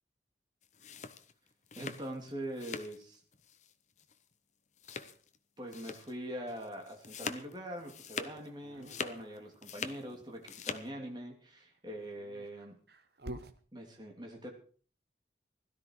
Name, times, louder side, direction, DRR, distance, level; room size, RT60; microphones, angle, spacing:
sound 1, 0.6-3.0 3.3-3.7 4.0-4.1 4.8-5.4 5.7-6.1 6.5-8.5 8.7-10.0 10.3-10.9, left 5 dB, 40° left, 0.9 m, -43 dB
voice 1, 1.8-3.2 5.6-12.8 13.7-14.5, right 1 dB, 25° right, 1 dB, 3.1 m, -43 dB
Dog, 8.6-10.2 11.8-13.6, right 1 dB, 60° right, 1.1 m, -49 dB
17.0 x 12.5 x 4.8 m, 0.43 s
head